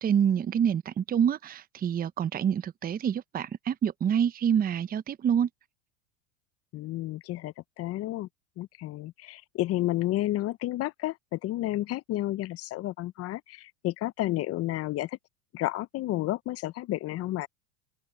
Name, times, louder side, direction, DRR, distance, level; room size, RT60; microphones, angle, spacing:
voice 1, 0.0-5.5, right 8 dB, 25° right, 0.8 m, -27 dB
voice 2, 6.7-8.3 8.6-15.1 15.5-17.5, left 16 dB, 40° left, 0.7 m, -31 dB
open air
supercardioid pair, 105°, 37 cm